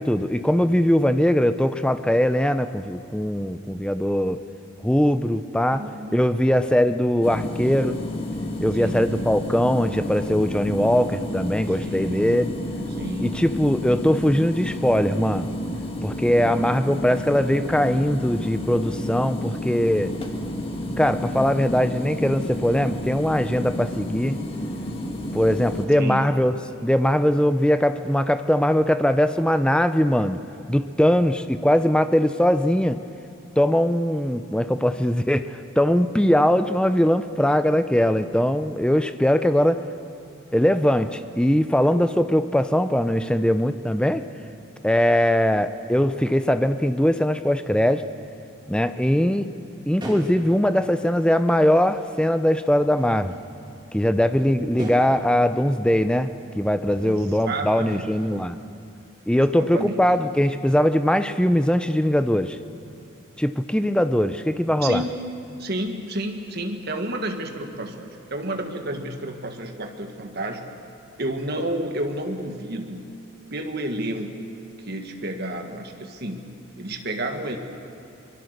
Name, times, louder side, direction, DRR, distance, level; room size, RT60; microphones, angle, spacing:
voice 1, 0.0-4.4 4.8-5.8 6.1-8.0 8.6-12.5 13.2-15.5 16.0-20.1 21.0-24.4 25.3-26.5 26.8-30.4 30.7-33.0 33.6-39.8 40.5-44.3 44.8-48.0 48.7-49.5 49.9-53.3 53.9-58.6 59.3-62.6 63.4-65.0, equal, 5° left, 10 dB, 0.6 m, -21 dB
voice 2, 5.7-6.4 8.8-9.1 11.8-12.4 13.0-13.4 26.0-26.2 57.0-58.1 59.5-60.0 64.8-65.2 65.6-70.6 71.2-73.1 73.5-74.4 74.8-76.4 76.8-77.6, right 1 dB, 50° right, 4 dB, 1.7 m, -30 dB
sound 1, 7.2-25.9, left 1 dB, 25° left, 1.7 m, -31 dB
sound 2, 49.3-51.6 51.9-55.5 56.4-56.6 56.9-58.8 59.0-60.0, right 1 dB, 20° right, 3.1 m, -41 dB
24.0 x 23.0 x 6.7 m, 2.8 s
head